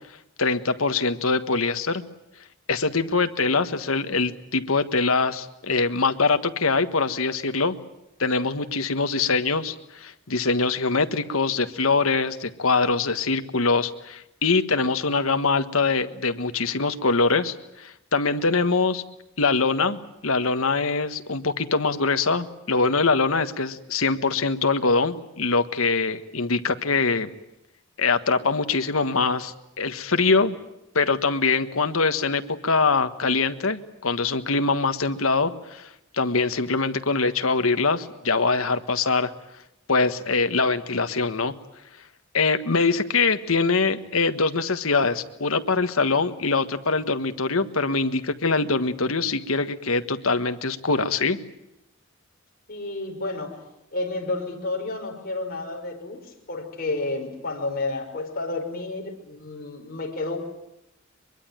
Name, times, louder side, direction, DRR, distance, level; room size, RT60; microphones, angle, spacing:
voice 1, 0.4-2.0 2.7-7.8 8.2-19.0 19.4-27.3 28.0-30.5 30.9-39.3 39.9-41.5 42.3-51.4, left 4 dB, 80° left, 9 dB, 1.5 m, -23 dB
voice 2, 52.7-53.6 53.9-60.4, left 2 dB, 45° left, 1 dB, 5.6 m, -31 dB
23.5 x 23.0 x 9.0 m, 0.85 s
head